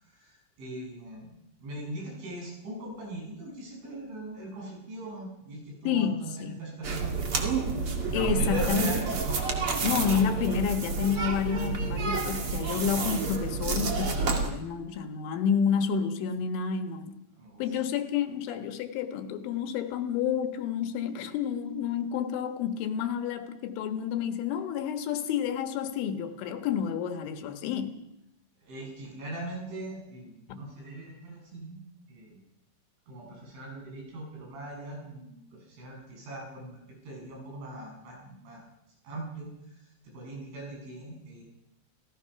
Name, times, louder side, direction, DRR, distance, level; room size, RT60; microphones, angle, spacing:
voice 1, 0.0-1.3 1.6-7.4 8.1-9.2 17.4-17.7 28.6-31.8 32.1-32.4 33.1-38.6 39.0-41.4, right 2 dB, 85° right, -1 dB, 10.5 m, -41 dB
voice 2, 5.9-6.6 8.1-9.0 9.8-17.2 17.6-28.0 30.5-30.6, left 7 dB, 85° left, 7 dB, 4.0 m, -30 dB
sound 1, 6.8-14.5, right 4 dB, 40° right, 2.3 m, -29 dB
28.5 x 17.5 x 5.9 m, 0.86 s
omnidirectional pair, 5.4 m